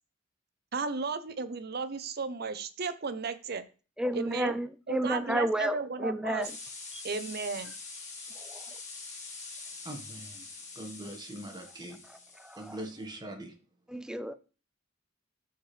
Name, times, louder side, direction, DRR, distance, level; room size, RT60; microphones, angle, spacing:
voice 1, 0.7-3.6 4.1-4.5 4.9-6.5 7.0-7.7, right 4 dB, 55° right, 0.7 m, -34 dB
voice 2, 4.0-6.5 6.9-7.0 8.4-8.6 12.4-12.8 13.9-14.3, equal, 5° right, 0.4 m, -32 dB
sound 1, 6.4-13.0, left 4 dB, 40° left, 1.6 m, -45 dB
voice 3, 9.8-10.5 10.7-12.0 12.5-13.5, right 1 dB, 20° right, 1.5 m, -42 dB
13.0 x 4.4 x 3.3 m
head